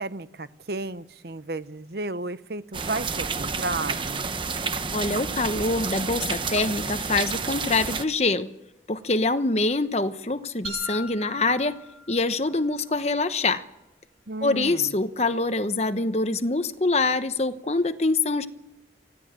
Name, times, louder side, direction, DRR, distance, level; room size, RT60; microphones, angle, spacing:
voice 1, 0.0-4.3 14.3-15.0, right 2 dB, 60° right, 0.9 m, -33 dB
sound 1, 2.7-8.0, right 4 dB, 25° right, 0.9 m, -30 dB
voice 2, 4.9-8.5 8.9-11.8 12.1-13.6 14.4-18.5, left 3 dB, 35° left, 1.0 m, -25 dB
sound 2, 10.6-12.7, right 1 dB, 85° right, 5.3 m, -40 dB
25.0 x 16.5 x 7.6 m
head